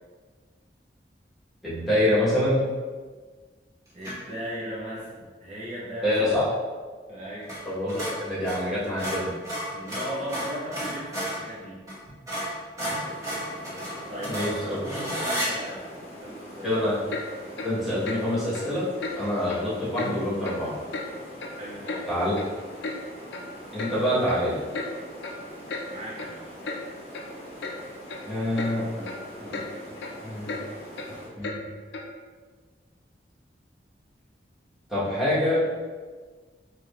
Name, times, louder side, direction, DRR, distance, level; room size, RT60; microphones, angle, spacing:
voice 1, 1.6-2.7 6.0-6.4 7.6-9.3 12.9-13.0 14.2-14.8 16.6-17.0 17.6-18.9 19.1-20.7 22.1-22.3 23.7-24.6 28.3-29.1 29.4-29.6 30.2-30.5 31.3-31.7 34.9-35.6, left 1 dB, ahead, -11 dB, 1.5 m, -26 dB
voice 2, 3.9-6.4 7.1-7.5 9.2-11.8 13.6-15.9 16.2-16.9 21.6-22.1 25.9-26.5, equal, 40° right, -8 dB, 0.7 m, -37 dB
sound 1, 4.0-4.3 7.4-7.6 7.9-11.4 11.9-12.0 12.3-15.5, equal, 20° right, 1.0 m, -32 dB
sound 2, 12.9-31.3, equal, 40° left, 1.0 m, -43 dB
Clock, 17.1-17.3 17.6-17.7 18.0-18.2 18.5-18.7 19.0-19.2 19.5-19.6 20.0-20.1 20.4-20.6 20.9-21.1 21.4-22.0 22.4-22.5 22.8-23.0 23.3-23.5 23.8-23.9 24.3-24.4 24.7-24.9 25.2-25.4 25.7-25.9 26.2-26.3 26.6-26.8 27.1-27.2 27.6-27.8 28.1-28.3 28.6-28.7 29.1-29.2 29.5-29.7 30.0-30.1 30.5-30.6 31.0-31.1 31.4-31.6 31.9-32.1, left 3 dB, 85° left, 0.5 m, -34 dB
4.8 x 2.9 x 2.5 m, 1.5 s
head